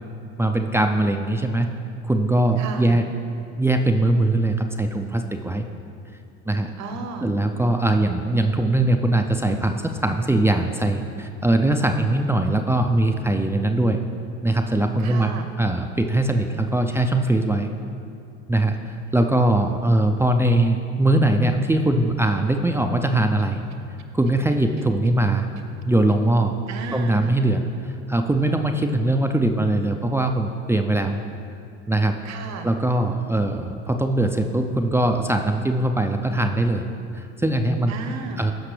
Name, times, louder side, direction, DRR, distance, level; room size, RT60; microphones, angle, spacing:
voice 1, 0.4-1.7 2.0-3.1 3.6-5.6 6.5-6.7 7.2-14.0 14.4-15.3 15.6-17.7 18.5-23.6 24.1-25.5 25.8-26.6 26.9-27.7 28.1-31.2 31.9-32.2 32.6-36.8 37.1-37.9 38.4-38.5, right 1 dB, 10° right, 4 dB, 0.4 m, -21 dB
voice 2, 2.6-3.0 6.8-7.3 15.0-15.5 26.7-27.3 32.2-32.7 37.9-38.5, right 4 dB, 55° right, 7 dB, 1.0 m, -34 dB
15.5 x 5.8 x 3.3 m, 2.5 s
hypercardioid pair, 70°, 33 cm